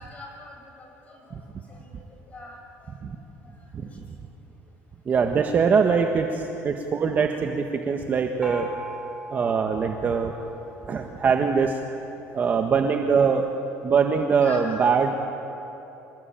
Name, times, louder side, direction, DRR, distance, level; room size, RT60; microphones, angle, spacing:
voice 1, 0.0-1.4 1.7-1.9 2.3-2.9 3.4-3.5 14.4-14.8, left 2 dB, 25° left, 0 dB, 7.7 m, -42 dB
voice 2, 5.1-8.7 9.3-10.3 10.9-11.8 12.3-13.5 13.8-15.2, right 6 dB, 35° right, 4 dB, 1.5 m, -22 dB
Gong, 8.4-11.9, equal, ahead, 3.7 m, -40 dB
27.0 x 20.5 x 8.9 m, 2.9 s
cardioid pair, 130°, 5 cm